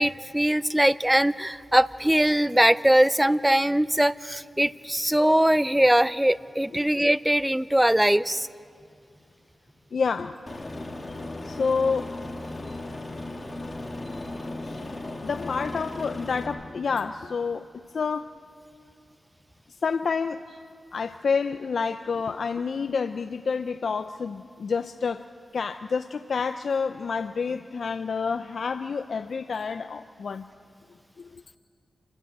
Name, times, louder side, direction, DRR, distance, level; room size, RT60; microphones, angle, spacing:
voice 1, 0.0-8.5, right 1 dB, 10° right, 17 dB, 0.5 m, -21 dB
voice 2, 9.9-10.4 11.4-12.1 14.6-14.9 15.2-17.7 17.9-18.3 19.8-20.6 20.9-25.3 25.5-30.4 31.2-31.3, left 5 dB, 70° left, 10 dB, 0.5 m, -28 dB
Aircraft, 10.5-16.5, left 2 dB, 30° left, 3.0 m, -36 dB
28.0 x 12.5 x 8.9 m, 2.3 s
cardioid pair, 65°, 0 cm